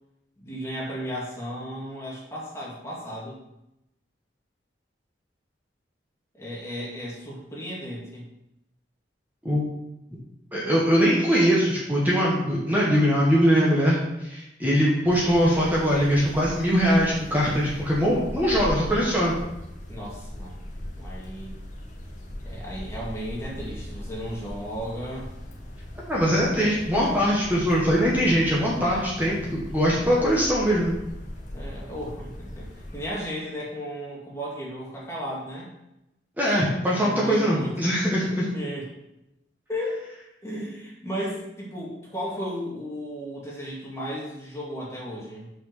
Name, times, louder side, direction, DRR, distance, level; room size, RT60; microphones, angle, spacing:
voice 1, 0.4-3.4 6.3-8.3 19.9-20.6 21.0-21.6 22.4-25.3 31.5-35.7 36.9-37.9 38.2-38.9 39.7-40.1 40.4-45.5, equal, 15° left, -5 dB, 2.2 m, -34 dB
voice 2, 10.5-19.4 26.1-30.9 36.4-38.4, equal, 10° right, -6 dB, 1.7 m, -22 dB
sound 1, 15.1-33.1, left 1 dB, 40° left, 1.7 m, -39 dB
6.3 x 6.1 x 6.7 m, 0.88 s
head